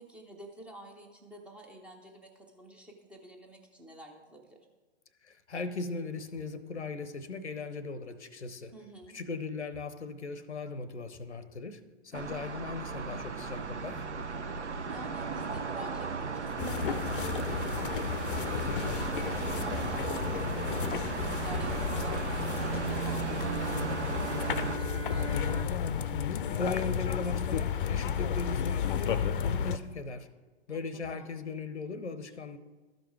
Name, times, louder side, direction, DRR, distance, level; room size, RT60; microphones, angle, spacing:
voice 1, 0.0-4.6 8.7-9.2 12.1-12.5 14.9-20.4 20.7-25.7 30.7-30.8 31.1-31.3, right 1 dB, 5° right, 0.5 m, -49 dB
voice 2, 5.2-8.7 9.1-14.1 26.3-30.3 30.7-32.6, left 3 dB, 85° left, 0.7 m, -38 dB
sound 1, 12.1-24.8, right 5 dB, 85° right, 0.7 m, -35 dB
sound 2, 16.6-29.8, left 8 dB, 50° left, 0.5 m, -32 dB
Bowed string instrument, 23.2-27.4, right 4 dB, 65° right, 1.6 m, -42 dB
12.5 x 5.2 x 4.6 m
figure-of-eight pair, 115°, 34 cm